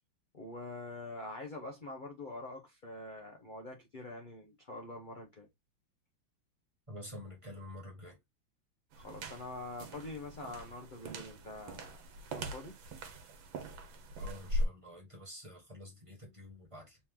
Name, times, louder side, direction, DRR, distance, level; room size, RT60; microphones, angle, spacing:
voice 1, 0.3-5.5 9.0-12.1 12.3-12.8, left 2 dB, 40° left, 0.7 m, -45 dB
voice 2, 6.9-8.2 14.2-17.0, left 1 dB, 15° right, 1.7 m, -48 dB
sound 1, 8.9-14.7, equal, 80° right, 1.7 m, -40 dB
4.3 x 3.0 x 3.6 m
omnidirectional pair, 2.1 m